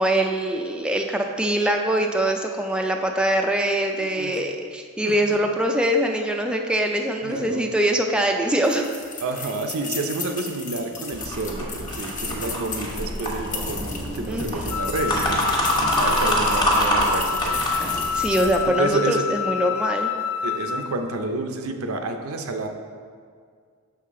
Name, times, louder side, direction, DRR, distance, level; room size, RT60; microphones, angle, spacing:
voice 1, 0.0-8.9 14.3-14.7 18.1-20.1, right 1 dB, 5° right, 2 dB, 0.3 m, -23 dB
voice 2, 4.0-4.4 5.0-5.4 7.2-7.7 9.2-15.5 16.0-17.7 18.3-18.4 18.6-19.2 20.4-22.7, right 3 dB, 75° right, 5 dB, 0.6 m, -29 dB
sound 1, 8.6-18.7, left 4 dB, 40° left, 0.9 m, -35 dB
sound 2, 11.1-18.7, equal, 20° left, 1.1 m, -26 dB
Wind instrument woodwind instrument, 14.7-20.9, left 7 dB, 75° left, 0.4 m, -28 dB
6.3 x 5.8 x 3.7 m, 2.1 s
head